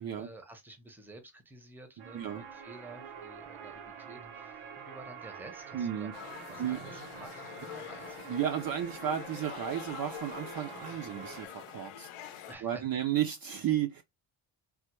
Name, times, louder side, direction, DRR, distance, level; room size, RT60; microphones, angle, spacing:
voice 1, 0.0-6.1 6.5-8.2 12.5-13.0, right 2 dB, 5° right, 0.6 m, -51 dB
sound 1, 2.0-11.5, right 7 dB, 85° right, 0.8 m, -46 dB
voice 2, 5.7-6.1 6.6-6.8 8.3-14.0, right 10 dB, 50° right, 0.4 m, -33 dB
sound 2, 6.1-12.5, left 11 dB, 80° left, 0.6 m, -46 dB
3.3 x 2.1 x 2.9 m
cardioid pair, 130°, 50 cm